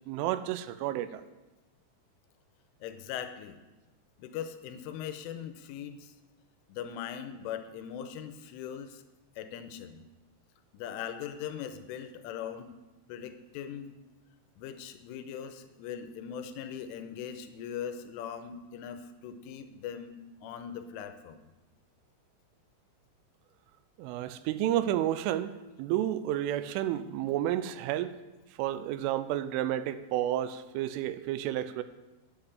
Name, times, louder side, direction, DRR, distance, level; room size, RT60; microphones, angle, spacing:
voice 1, 0.1-1.2 24.0-28.2 28.6-31.8, right 12 dB, 85° right, 3.1 m, -31 dB
voice 2, 2.8-3.6 4.2-6.1 6.7-9.0 9.4-10.1 10.7-12.7 13.1-14.0 14.6-20.1 20.4-21.4, left 8 dB, 85° left, 3.3 m, -40 dB
10.0 x 8.3 x 8.7 m
omnidirectional pair, 5.7 m